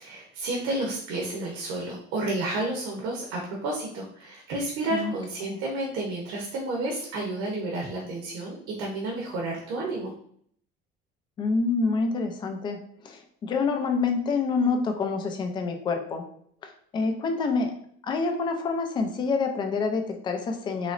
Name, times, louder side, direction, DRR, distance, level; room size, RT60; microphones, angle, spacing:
voice 1, 0.0-10.1, right 2 dB, 80° right, -1 dB, 0.9 m, -31 dB
voice 2, 11.4-12.8 13.0-16.2 16.6-17.7 18.0-20.9, left 4 dB, 25° left, 5 dB, 0.4 m, -27 dB
3.9 x 3.0 x 2.5 m, 0.64 s
cardioid pair, 175°, 20 cm